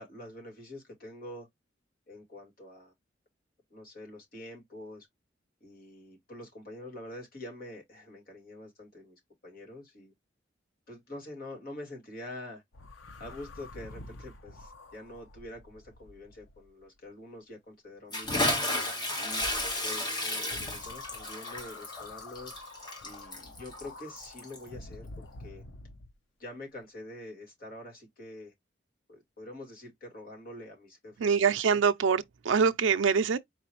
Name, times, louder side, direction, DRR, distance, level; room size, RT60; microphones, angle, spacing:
voice 1, 0.0-1.5 2.1-2.9 3.7-5.1 5.6-10.1 10.9-12.6 13.2-18.4 19.2-19.4 19.8-22.5 23.0-25.6 26.4-28.5 29.1-31.8, left 1 dB, 50° left, 2.2 m, -46 dB
sound 1, 12.7-17.0 20.5-26.1, left 3 dB, 85° left, 0.7 m, -48 dB
Bathtub (filling or washing) / Splash splatter, 18.1-24.7, left 1 dB, 25° left, 1.2 m, -33 dB
voice 2, 31.2-33.4, right 6 dB, 85° right, 0.4 m, -24 dB
4.9 x 3.0 x 2.9 m
head